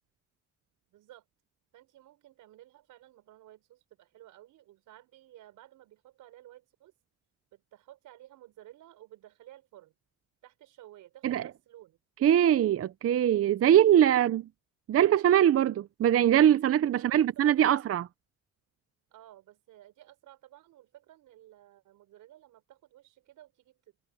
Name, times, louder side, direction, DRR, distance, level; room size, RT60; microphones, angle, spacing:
voice 1, 0.9-1.3 1.7-6.9 7.5-9.9 10.4-12.0 14.1-14.4 16.8-17.8 19.1-23.8, right 14 dB, 90° right, 6.1 m, -54 dB
voice 2, 12.2-14.4 14.9-18.1, right 10 dB, 50° right, 0.7 m, -22 dB
cardioid pair, 90°, 30 cm